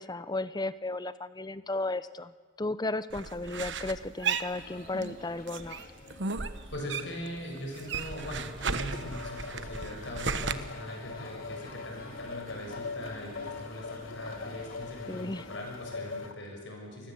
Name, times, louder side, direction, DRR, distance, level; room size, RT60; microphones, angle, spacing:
voice 1, 0.0-2.3 2.6-5.8 15.1-15.5, left 2 dB, 20° left, 15 dB, 0.8 m, -34 dB
sound 1, 3.1-5.2 5.5-7.3 7.6-10.5, right 5 dB, 60° right, 1.3 m, -35 dB
sound 2, 4.5-15.6, left 2 dB, 45° left, 3.5 m, -51 dB
voice 2, 6.7-17.1, equal, 60° left, 1 dB, 7.0 m, -41 dB
sound 3, 8.8-16.3, left 4 dB, 80° left, 2.0 m, -42 dB
28.5 x 20.5 x 8.0 m, 1.4 s
head